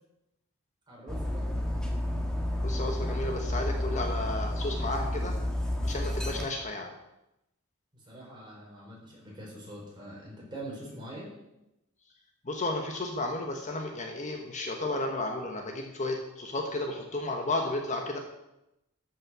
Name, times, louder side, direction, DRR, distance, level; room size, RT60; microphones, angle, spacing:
voice 1, 0.9-1.6 8.1-11.3, right 1 dB, 20° right, -4 dB, 4.7 m, -44 dB
Dog, 1.1-6.5, left 1 dB, 5° left, 1.5 m, -31 dB
voice 2, 2.6-5.3 5.8-6.9 12.4-18.2, left 2 dB, 35° left, 2 dB, 1.3 m, -33 dB
13.5 x 6.4 x 6.1 m, 0.89 s
head